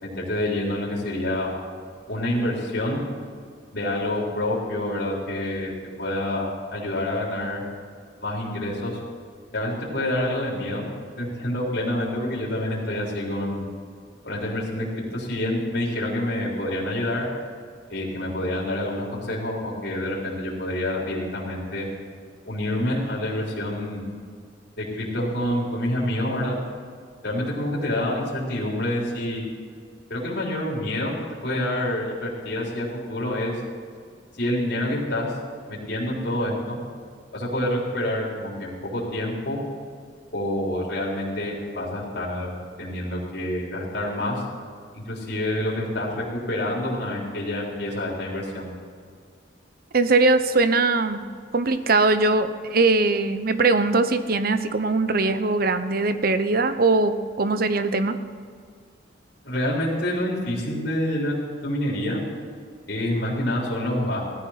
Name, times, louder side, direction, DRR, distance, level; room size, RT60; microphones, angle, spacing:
voice 1, 0.0-1.5 2.1-3.0 3.7-5.7 6.0-7.6 8.2-9.0 9.5-10.9 11.2-13.6 14.2-14.9 15.1-17.3 17.9-21.9 22.5-24.0 24.8-26.6 27.2-29.5 30.1-31.2 31.4-33.5 34.4-35.3 35.7-36.8 37.3-39.6 40.3-44.4 44.9-48.7 59.4-61.4 61.6-62.2 62.9-64.2, left 1 dB, 60° left, -6 dB, 4.0 m, -27 dB
voice 2, 49.9-51.2 51.5-58.2, right 3 dB, 55° right, 10 dB, 0.9 m, -21 dB
16.5 x 13.5 x 5.9 m, 2.1 s
head